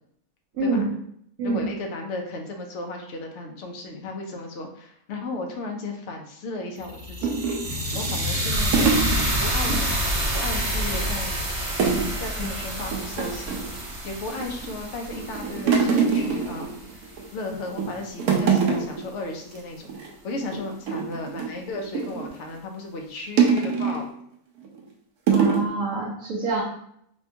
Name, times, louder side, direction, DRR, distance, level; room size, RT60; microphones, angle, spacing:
voice 1, 0.6-0.9 1.4-1.6 25.3-26.6, right 3 dB, 75° right, -6 dB, 1.2 m, -25 dB
voice 2, 1.4-7.4 7.9-9.0 9.4-11.5 12.2-24.0, left 2 dB, 60° left, 3 dB, 0.8 m, -35 dB
sound 1, 6.8-17.0, equal, 50° right, 0.3 m, -28 dB
sound 2, 7.2-9.8 10.1-10.3 10.6-11.2 11.8-12.1 12.4-12.6 12.9-13.7 14.3-14.8 15.1-17.3 17.6-17.9 18.2-19.1 19.4-19.6 19.9-20.1 20.5-22.3 23.4-24.1 24.6-24.8 25.3-25.7, right 5 dB, 90° right, 1.2 m, -24 dB
4.3 x 2.2 x 2.8 m, 0.69 s
omnidirectional pair, 1.6 m